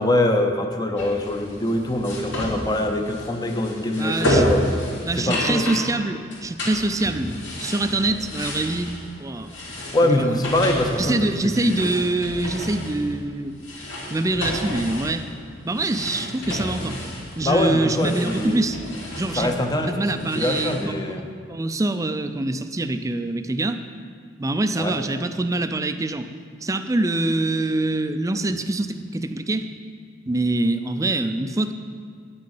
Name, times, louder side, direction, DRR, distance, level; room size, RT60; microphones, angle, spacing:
voice 1, 0.0-4.6 5.2-5.7 9.9-11.9 17.4-18.6 19.4-21.2 24.8-24.9, left 1 dB, 20° left, 4 dB, 0.7 m, -23 dB
sound 1, 0.9-20.8, left 1 dB, 70° left, 2.6 m, -31 dB
voice 2, 4.0-4.5 5.0-7.3 7.6-8.9 9.2-9.6 10.0-10.4 11.0-15.2 15.6-17.0 17.4-18.8 19.1-19.5 19.8-21.0 21.5-23.8 24.4-26.3 26.6-29.7 30.3-31.7, right 2 dB, 15° right, 9 dB, 0.4 m, -25 dB
9.8 x 6.5 x 7.0 m, 2.1 s
head